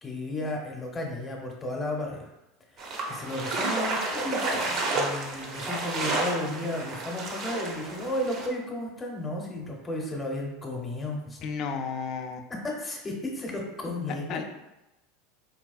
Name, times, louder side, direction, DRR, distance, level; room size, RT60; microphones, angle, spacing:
voice 1, 0.0-2.3 2.8-11.4 12.6-14.4, left 1 dB, 20° left, 0 dB, 0.8 m, -33 dB
sound 1, 2.8-8.5, right 2 dB, 50° right, 0.6 m, -31 dB
voice 2, 11.4-12.5 14.3-14.4, left 5 dB, 55° left, 5 dB, 0.4 m, -32 dB
4.0 x 2.3 x 2.4 m, 0.96 s
supercardioid pair, 105°, 0 cm